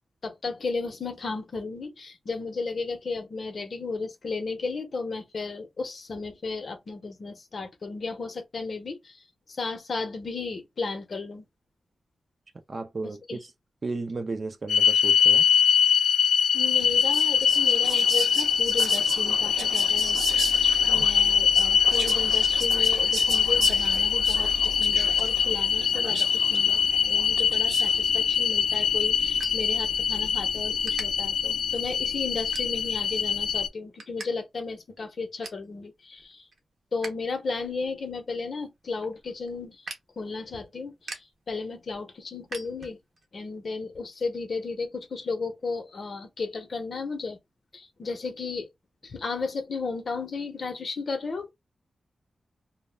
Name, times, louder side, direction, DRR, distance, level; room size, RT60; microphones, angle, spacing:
voice 1, 0.2-9.2 9.6-11.4 13.0-13.4 16.5-36.4 36.9-39.8 40.2-43.0 43.3-47.4 47.7-48.7 49.0-51.5, left 4 dB, 45° left, 0.6 m, -34 dB
voice 2, 12.7-13.5 13.8-15.5, right 3 dB, 35° right, 0.3 m, -34 dB
sound 1, 14.7-33.7, left 7 dB, 90° left, 0.3 m, -23 dB
Whispering, 16.7-28.1, right 4 dB, 90° right, 0.6 m, -37 dB
sound 2, 28.3-30.3 30.8-31.1 31.6-31.9 32.5-33.1 33.5-34.3 34.6-34.7 35.0-35.7 36.1-37.2 37.5-43.3, right 2 dB, 55° right, 0.7 m, -43 dB
2.2 x 2.0 x 3.2 m
wide cardioid pair, 165°, 0 cm